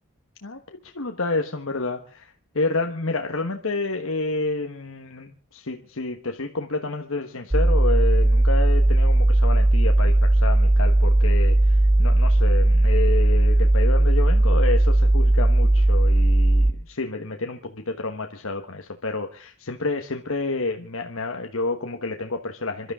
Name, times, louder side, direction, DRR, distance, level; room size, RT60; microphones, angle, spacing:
voice 1, 0.9-2.3 2.5-22.9, left 3 dB, 65° left, 4 dB, 1.3 m, -29 dB
sound 1, 7.5-16.7, right 1 dB, 25° right, 1.6 m, -17 dB
27.0 x 13.0 x 3.7 m, 0.38 s
head